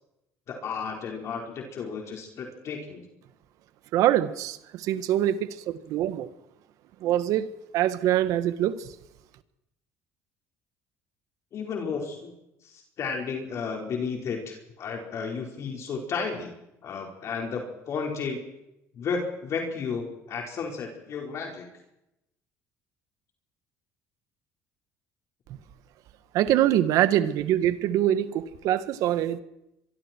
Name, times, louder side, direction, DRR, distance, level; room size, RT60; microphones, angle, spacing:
voice 1, 0.5-3.0 11.5-12.3 12.6-16.5 16.8-18.4 18.9-21.7, left 5 dB, 55° left, 5.0 m, -33 dB
voice 2, 3.9-6.3 7.0-8.9 26.3-29.4, right 12 dB, 70° right, 1.6 m, -24 dB
24.0 x 24.0 x 4.6 m
supercardioid pair, 90°, 6 cm